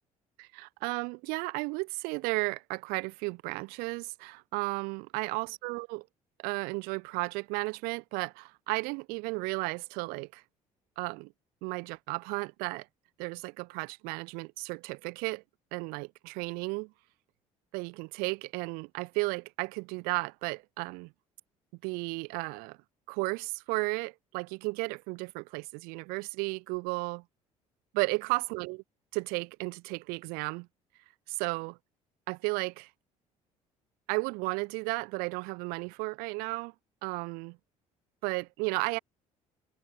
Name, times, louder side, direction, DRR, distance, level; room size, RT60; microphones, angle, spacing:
voice 1, 0.4-6.1 6.4-10.4 11.0-11.3 11.6-12.9 13.2-15.4 15.7-16.9 17.7-21.1 21.8-22.8 23.1-27.2 27.9-28.8 29.1-30.7 31.3-31.8 32.3-32.9 34.1-36.7 37.0-37.6 38.2-39.0, right 29 dB, 55° right, 0.4 m, -34 dB
figure-of-eight pair, 55°, 18 cm